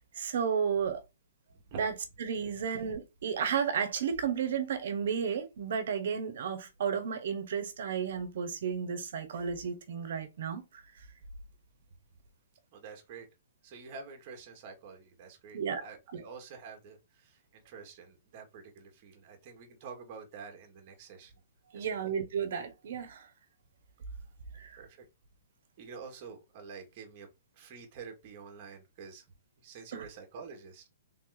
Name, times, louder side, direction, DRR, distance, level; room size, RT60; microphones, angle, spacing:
voice 1, 0.1-1.0 1.7-1.9 2.2-10.8 15.5-15.8 16.1-16.2 21.7-23.3 24.5-24.8 29.9-30.0, right 7 dB, 65° right, 1.2 m, -33 dB
voice 2, 12.7-13.3 13.6-21.3 21.7-22.0 24.8-25.1 25.8-27.3 27.5-29.2 29.6-30.9, right 5 dB, 40° right, 1.5 m, -48 dB
3.7 x 3.0 x 3.9 m
hypercardioid pair, 150°, 0 cm